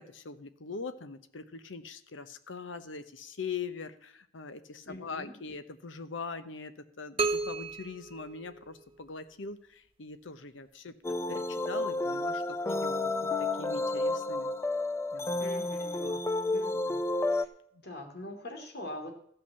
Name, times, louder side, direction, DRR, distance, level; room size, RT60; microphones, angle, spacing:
voice 1, 0.0-11.0 11.3-14.5 15.1-15.4 16.0-16.2 16.8-17.0, left 4 dB, 85° left, 11 dB, 1.0 m, -42 dB
voice 2, 4.8-5.4 15.4-16.1 16.5-16.8 17.3-17.5 17.8-19.2, left 1 dB, 60° left, 4 dB, 2.5 m, -43 dB
sound 1, 7.2-9.1, right 3 dB, 30° right, 0.9 m, -33 dB
sound 2, 11.0-17.5, left 2 dB, 15° left, 0.5 m, -31 dB
14.5 x 5.8 x 6.9 m, 0.67 s
head